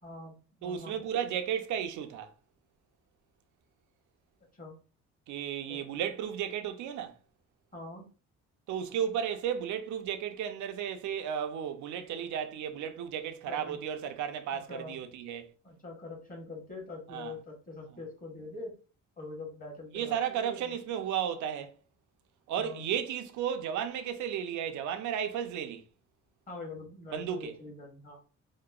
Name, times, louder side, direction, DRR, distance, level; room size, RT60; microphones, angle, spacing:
voice 1, 0.0-1.0 4.6-4.8 5.6-5.8 7.7-8.1 13.4-13.8 14.5-15.0 15.6-18.7 19.2-20.7 22.6-22.9 26.5-28.2, left 2 dB, 30° left, 1.1 m, -44 dB
voice 2, 0.6-2.3 5.3-7.2 8.7-15.5 17.1-17.3 19.9-21.7 22.5-25.9 27.1-27.5, right 9 dB, 75° right, 0.5 m, -34 dB
2.8 x 2.0 x 2.3 m
cardioid pair, 90°, 30 cm